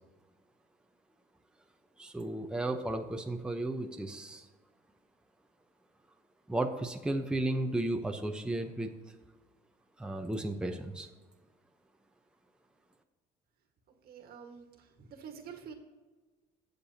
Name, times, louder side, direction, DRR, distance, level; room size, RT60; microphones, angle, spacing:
voice 1, 2.0-4.4 6.5-8.9 10.0-11.1, right 1 dB, 5° right, 4 dB, 0.8 m, -34 dB
voice 2, 14.0-15.7, right 7 dB, 65° right, 4 dB, 1.6 m, -48 dB
20.0 x 6.8 x 2.8 m, 1.3 s
cardioid pair, 110°, 17 cm